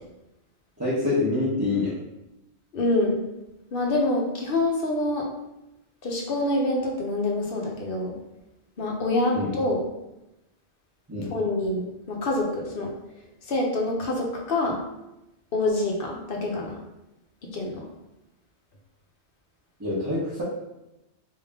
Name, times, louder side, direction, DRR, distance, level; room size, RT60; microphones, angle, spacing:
voice 1, 0.8-1.9 9.3-9.5 11.1-11.3 19.8-20.4, left 2 dB, 15° right, -11 dB, 0.9 m, -26 dB
voice 2, 2.7-3.2 3.7-5.3 6.0-8.1 8.8-9.8 11.3-12.9 13.5-14.8 15.5-16.8 17.5-17.8, left 2 dB, 55° left, 0 dB, 0.9 m, -26 dB
3.3 x 2.7 x 3.5 m, 0.92 s
omnidirectional pair, 1.2 m